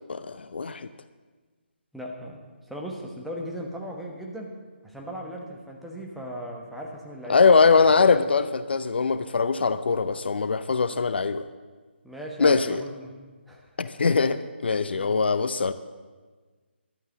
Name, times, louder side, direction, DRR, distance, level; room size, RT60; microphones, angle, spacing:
voice 1, 0.1-0.9 7.3-11.4 12.4-12.8 13.8-15.7, left 4 dB, 60° left, 12 dB, 0.6 m, -22 dB
voice 2, 1.9-4.6 4.8-7.8 12.0-13.1 13.5-13.7 14.9-15.2, equal, ahead, -2 dB, 1.3 m, -38 dB
12.0 x 9.4 x 7.2 m, 1.4 s
figure-of-eight pair, 150°, 6 cm